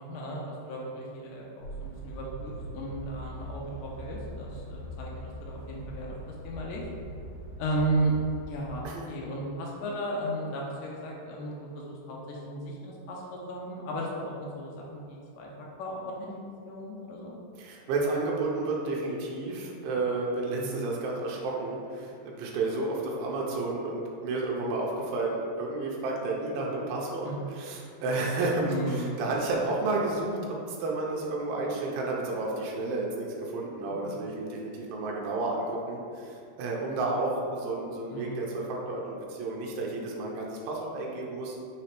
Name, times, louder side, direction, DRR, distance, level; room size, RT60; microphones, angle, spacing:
voice 1, 0.0-6.2 6.4-6.8 7.6-8.1 8.4-15.5 15.8-16.3 16.7-17.3 20.6-20.8 27.2-27.3 28.7-29.2 33.9-34.2 38.1-38.4, right 1 dB, 85° left, -3 dB, 1.9 m, -35 dB
sound 1, 1.6-8.9, equal, 65° left, 2.4 m, -41 dB
voice 2, 17.6-41.6, right 2 dB, 80° right, -2 dB, 2.3 m, -31 dB
5.6 x 3.1 x 2.9 m, 2.4 s
omnidirectional pair, 4.4 m